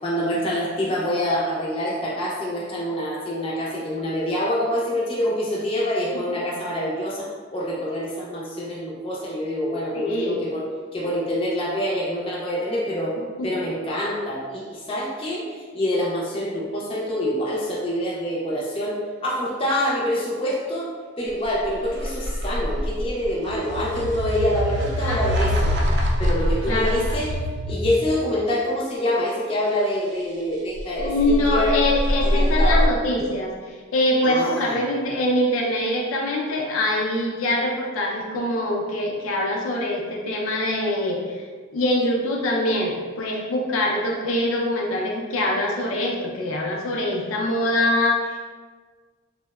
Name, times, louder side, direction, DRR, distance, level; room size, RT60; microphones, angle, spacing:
voice 1, 0.0-10.6 10.9-13.1 13.4-20.9 21.2-25.7 26.2-27.3 27.7-31.8 32.2-32.9 34.2-34.8, equal, 25° left, -5 dB, 0.4 m, -26 dB
voice 2, 9.9-10.4 13.4-13.5 25.0-25.5 26.7-27.0 31.0-41.2 41.7-48.4, left 1 dB, 85° left, -1 dB, 0.4 m, -24 dB
sound 1, 21.4-28.1 30.8-32.9, equal, 55° right, 0.3 m, -24 dB
2.7 x 2.0 x 2.2 m, 1.5 s
head